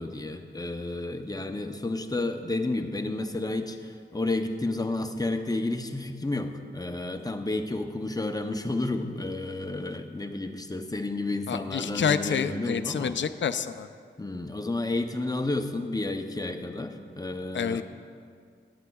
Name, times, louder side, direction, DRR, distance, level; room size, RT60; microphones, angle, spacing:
voice 1, 0.0-13.2 14.2-17.8, left 2 dB, 20° left, 5 dB, 0.6 m, -31 dB
voice 2, 11.5-13.9 17.5-17.8, left 7 dB, 65° left, 12 dB, 0.4 m, -28 dB
14.5 x 9.6 x 2.3 m, 2.1 s
wide cardioid pair, 85°, 20 cm